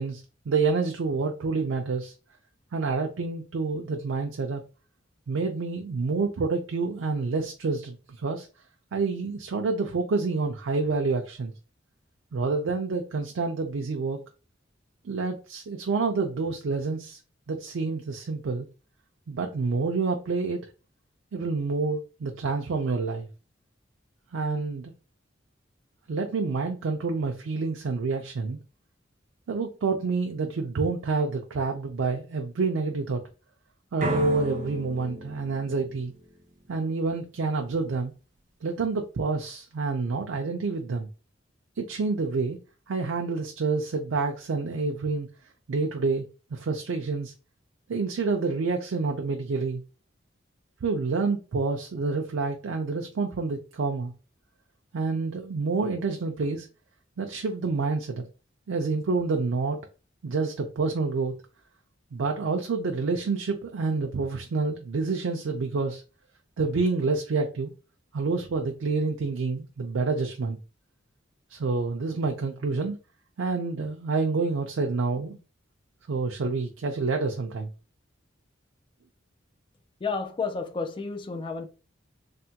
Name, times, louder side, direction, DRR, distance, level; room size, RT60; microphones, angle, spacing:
voice 1, 0.0-2.1 2.7-4.6 5.3-8.5 8.9-11.5 12.3-14.2 15.0-17.2 17.5-18.7 19.3-20.7 21.3-23.3 24.3-24.9 26.1-28.6 29.5-33.2 33.9-36.1 36.7-38.1 38.6-41.1 41.8-42.6 42.9-45.3 45.7-46.2 46.5-47.3 47.9-49.8 50.8-54.1 54.9-56.7 57.2-58.2 58.7-59.8 60.2-61.3 62.1-66.0 66.6-67.7 68.1-70.6 71.5-73.0 73.4-75.4 76.1-77.7, right 4 dB, 85° right, 0.4 m, -28 dB
sound 1, 34.0-36.9, equal, 40° right, 0.8 m, -35 dB
voice 2, 80.0-81.6, left 4 dB, 25° left, 0.3 m, -31 dB
3.3 x 2.1 x 2.8 m
head